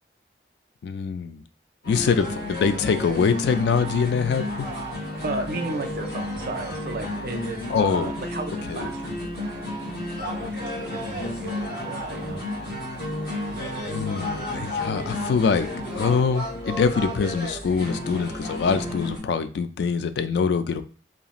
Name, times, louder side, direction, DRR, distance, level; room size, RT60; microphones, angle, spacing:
voice 1, 0.8-1.4 1.9-4.7 7.7-8.1 8.7-8.9 13.8-15.7 15.9-20.8, left 5 dB, 75° left, 10 dB, 0.3 m, -24 dB
sound 1, 1.8-19.2, left 1 dB, 55° left, 1.3 m, -32 dB
voice 2, 5.2-9.6 10.2-10.5 10.9-12.4, right 2 dB, 55° right, 6 dB, 0.4 m, -34 dB
2.9 x 2.4 x 2.4 m, 0.40 s
head